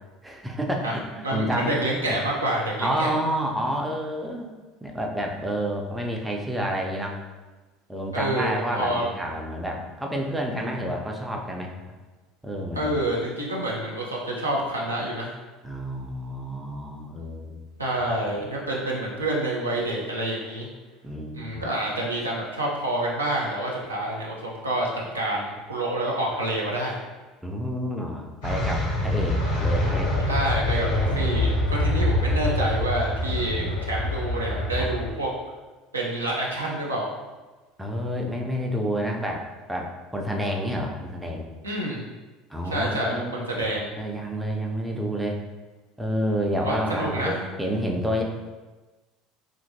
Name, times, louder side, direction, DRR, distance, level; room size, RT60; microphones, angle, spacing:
voice 1, 0.2-1.8 2.1-2.2 2.8-4.5 4.8-7.2 7.9-11.7 12.4-13.0 15.6-17.7 18.3-18.5 21.0-21.7 27.4-30.1 30.9-31.3 33.3-33.8 34.8-34.9 37.8-41.5 42.5-45.4 46.0-48.2, equal, 5° right, 0 dB, 0.4 m, -29 dB
voice 2, 1.2-3.1 8.1-9.1 12.7-15.3 17.8-20.7 21.3-24.9 25.1-27.0 30.3-35.3 35.9-37.1 41.6-42.1 42.6-43.9 46.4-47.4, right 1 dB, 85° right, -3 dB, 0.5 m, -28 dB
sound 1, 28.4-35.1, left 1 dB, 70° left, 1.0 m, -25 dB
2.8 x 2.5 x 2.6 m, 1.2 s
figure-of-eight pair, 65°, 0 cm